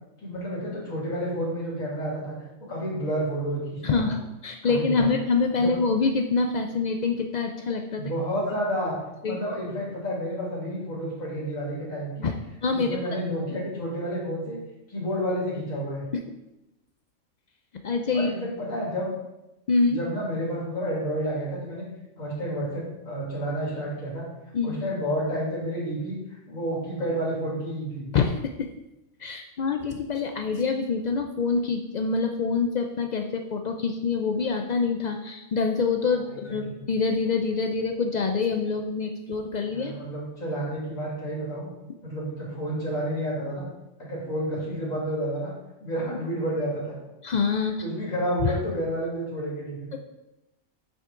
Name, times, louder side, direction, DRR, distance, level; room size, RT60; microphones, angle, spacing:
voice 1, 0.2-4.2 4.6-5.1 5.5-5.7 7.9-8.9 9.2-12.3 12.7-14.6 14.9-16.0 18.1-19.1 19.9-21.9 22.2-24.2 24.6-28.1 36.3-36.8 39.7-41.7 42.0-43.6 44.0-45.5 45.8-46.8 47.8-49.9, equal, 85° left, -6 dB, 3.0 m, -30 dB
voice 2, 3.8-8.0 9.2-9.4 12.2-12.3 12.6-13.0 17.8-18.3 19.7-20.0 24.5-24.8 28.1-28.7 29.2-40.0 47.2-47.7 48.4-48.6 49.9-50.0, left 4 dB, 70° left, 4 dB, 0.4 m, -26 dB
7.9 x 6.3 x 3.7 m, 0.94 s
omnidirectional pair, 1.4 m